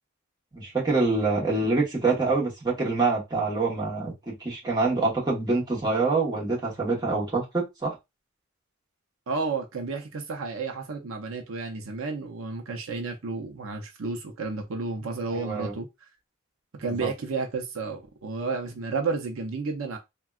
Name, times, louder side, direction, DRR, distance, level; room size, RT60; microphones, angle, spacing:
voice 1, 0.5-8.0 15.3-15.8 16.8-17.1, right 3 dB, 20° right, 1.0 m, -26 dB
voice 2, 9.3-15.9 16.7-20.0, right 4 dB, 80° right, 0.6 m, -32 dB
3.5 x 2.2 x 2.3 m
head